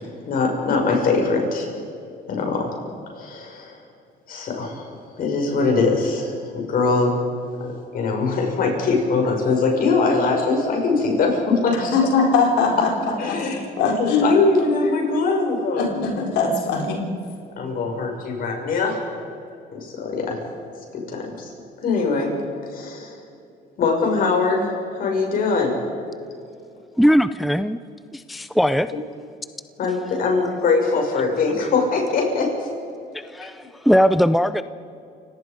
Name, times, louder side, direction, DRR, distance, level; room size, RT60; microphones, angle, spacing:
voice 1, 0.3-1.7 2.3-2.8 3.1-3.8 4.3-4.9 5.2-7.2 7.6-12.0 13.2-16.0 17.6-19.0 19.7-20.4 20.9-21.5 21.8-22.3 22.7-23.2 23.8-25.8 29.8-32.7, left 4 dB, 55° left, 1 dB, 6.2 m, -22 dB
voice 2, 11.7-12.9 13.3-13.4 13.8-14.2 15.8-17.0, left 4 dB, 85° left, 0 dB, 4.2 m, -21 dB
voice 3, 27.0-27.8 28.1-28.9 33.1-34.6, equal, ahead, 13 dB, 0.5 m, -19 dB
29.5 x 18.0 x 5.2 m, 2.6 s
cardioid pair, 110°, 17 cm